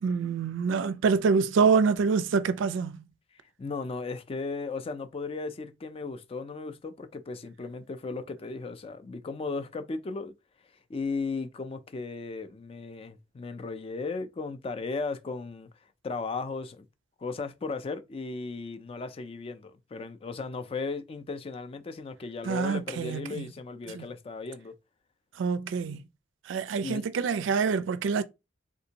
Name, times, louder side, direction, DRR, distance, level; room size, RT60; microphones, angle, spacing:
voice 1, 0.0-2.9 22.5-23.5 23.9-24.1 25.4-26.0 26.5-28.2, right 5 dB, 90° right, 0.4 m, -26 dB
voice 2, 3.6-10.3 10.9-15.7 16.0-16.8 17.2-24.7 26.8-27.0, left 4 dB, 30° left, 0.4 m, -36 dB
3.5 x 2.6 x 2.8 m
head